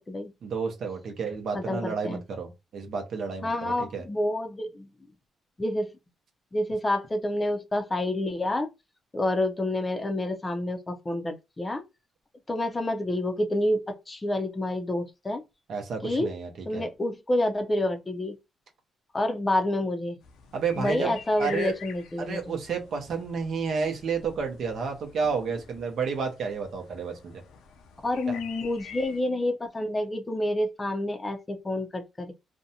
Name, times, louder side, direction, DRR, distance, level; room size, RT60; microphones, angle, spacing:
voice 1, 0.4-4.0 15.7-16.9 20.5-21.7 22.2-27.3 28.3-28.4, right 5 dB, 65° right, 0.7 m, -31 dB
voice 2, 1.5-2.2 3.4-4.9 5.6-5.9 6.5-8.7 9.1-11.8 12.5-15.4 16.0-16.3 16.6-18.3 19.1-20.2 20.8-22.6 28.0-32.3, left 1 dB, 20° left, 0.5 m, -28 dB
sound 1, 20.2-29.2, left 6 dB, 85° left, 0.5 m, -47 dB
2.6 x 2.1 x 2.7 m
cardioid pair, 90°, 0 cm